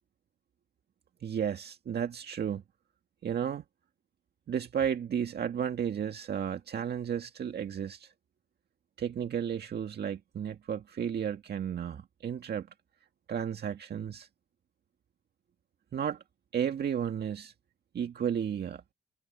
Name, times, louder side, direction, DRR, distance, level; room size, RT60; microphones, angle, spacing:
voice 1, 1.2-2.6 3.2-3.6 4.5-8.1 9.0-12.7 13.3-14.3 15.9-16.2 16.5-17.5 17.9-18.8, right 8 dB, 55° right, 1.9 m, -33 dB
cardioid pair, 90°, 20 cm